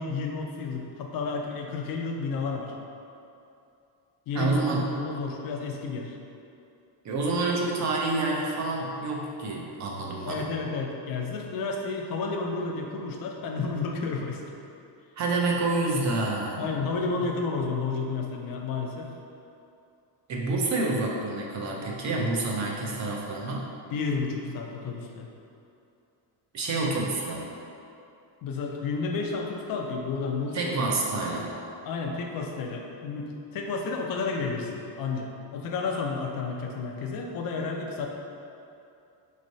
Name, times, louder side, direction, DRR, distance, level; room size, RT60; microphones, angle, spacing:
voice 1, 0.0-2.7 4.3-6.1 10.2-14.4 16.6-19.1 23.9-25.3 28.4-30.7 31.8-38.1, left 4 dB, 50° left, 1 dB, 0.5 m, -31 dB
voice 2, 4.3-4.8 7.0-10.4 15.2-16.7 17.2-17.3 20.3-23.7 26.5-27.4 30.5-31.5, right 2 dB, 40° right, -1 dB, 0.5 m, -28 dB
4.3 x 3.1 x 2.6 m, 2.6 s
cardioid pair, 145°, 47 cm